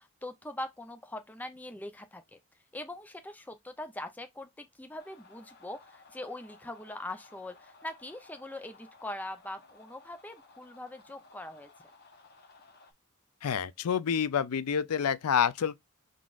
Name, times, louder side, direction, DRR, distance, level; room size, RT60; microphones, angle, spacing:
voice 1, 0.0-2.4 2.7-11.7, left 1 dB, 5° left, 0.4 m, -42 dB
sound 1, 5.0-12.9, left 3 dB, 45° left, 0.9 m, -57 dB
voice 2, 13.4-15.8, left 7 dB, 90° left, 0.4 m, -28 dB
4.8 x 3.9 x 2.4 m
head